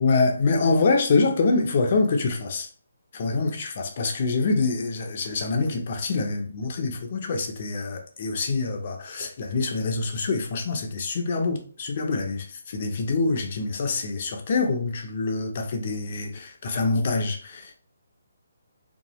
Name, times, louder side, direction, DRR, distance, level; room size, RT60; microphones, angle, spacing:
voice 1, 0.0-2.7 3.1-17.7, left 3 dB, 45° left, 0.5 m, -25 dB
2.8 x 2.3 x 2.9 m
hypercardioid pair, 155°, 0 cm